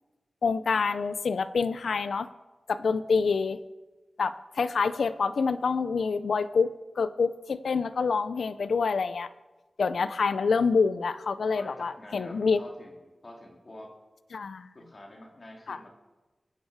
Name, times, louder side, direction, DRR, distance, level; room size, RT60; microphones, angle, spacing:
voice 1, 0.4-2.3 2.7-3.6 4.2-9.3 9.8-12.6 14.3-14.7 15.7-15.8, left 5 dB, 85° left, 14 dB, 0.6 m, -27 dB
voice 2, 11.5-13.9 14.7-15.9, left 1 dB, 50° left, 0 dB, 2.8 m, -47 dB
22.5 x 9.4 x 4.8 m, 1.2 s
cardioid pair, 40°, 0 cm